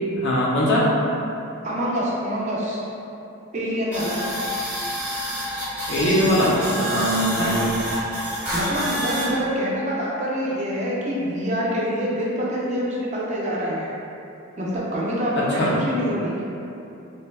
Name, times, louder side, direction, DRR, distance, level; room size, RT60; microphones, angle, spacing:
voice 1, 0.2-0.9 5.9-7.6 15.4-15.7, equal, 50° left, -5 dB, 0.4 m, -21 dB
voice 2, 1.6-2.8 3.5-4.2 7.4-7.6 8.5-13.9 14.6-16.4, equal, 35° right, -5 dB, 0.4 m, -26 dB
sound 1, 3.9-9.3, equal, 10° right, 0.8 m, -28 dB
2.7 x 2.2 x 2.2 m, 2.8 s
head